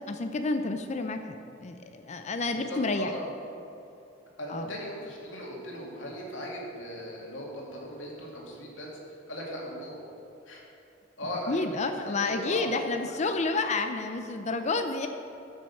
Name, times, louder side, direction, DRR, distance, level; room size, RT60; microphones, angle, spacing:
voice 1, 0.0-3.1 4.5-4.7 11.5-15.1, left 3 dB, 40° left, 7 dB, 0.5 m, -30 dB
voice 2, 2.5-3.3 4.4-10.0 10.5-10.6 11.2-12.7, equal, 90° left, -3 dB, 2.4 m, -38 dB
10.5 x 6.3 x 7.0 m, 2.9 s
head